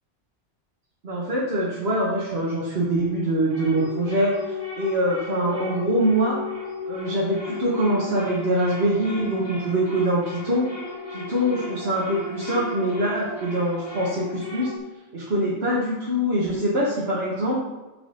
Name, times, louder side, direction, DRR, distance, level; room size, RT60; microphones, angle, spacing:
voice 1, 1.0-6.4 6.9-10.7 11.1-14.7 15.1-17.6, right 1 dB, 55° right, -5 dB, 1.7 m, -24 dB
sound 1, 2.8-14.8, left 3 dB, 35° left, 2.1 m, -35 dB
7.0 x 4.8 x 6.7 m, 1.1 s
omnidirectional pair, 1.2 m